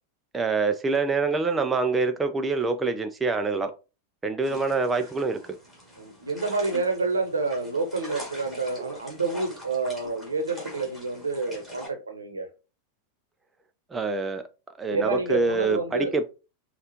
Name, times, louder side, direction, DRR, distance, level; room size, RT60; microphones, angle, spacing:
voice 1, 0.3-3.7 4.2-5.4 13.9-14.4 14.8-16.3, right 3 dB, 15° right, 0.4 m, -25 dB
sound 1, 4.4-11.9, equal, 5° left, 2.3 m, -43 dB
voice 2, 6.0-12.5 14.9-16.1, right 3 dB, 75° right, 0.8 m, -28 dB
5.4 x 2.4 x 2.8 m
figure-of-eight pair, 90°, 0 cm